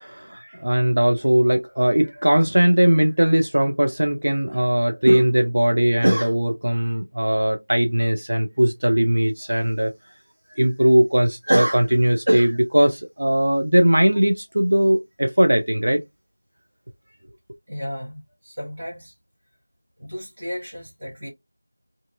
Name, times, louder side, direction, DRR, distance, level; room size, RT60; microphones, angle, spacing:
voice 1, 0.0-9.9 10.5-16.0, right 1 dB, 45° right, 0.4 m, -19 dB
voice 2, 17.7-19.1 20.0-21.3, equal, 10° right, 0.9 m, -34 dB
2.6 x 2.5 x 2.2 m
figure-of-eight pair, 180°, 0 cm